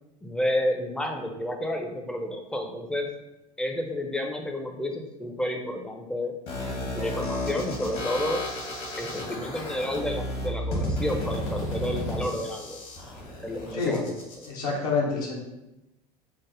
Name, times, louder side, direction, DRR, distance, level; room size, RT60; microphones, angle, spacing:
voice 1, 0.2-3.1 3.6-6.4 7.0-8.4 9.0-12.8 13.4-14.1, left 1 dB, 5° left, 3 dB, 0.4 m, -30 dB
sound 1, 6.5-14.5, left 1 dB, 55° left, 1.1 m, -33 dB
voice 2, 14.4-15.4, left 4 dB, 75° left, -4 dB, 0.9 m, -27 dB
3.3 x 2.0 x 3.7 m, 0.96 s
figure-of-eight pair, 70°, 19 cm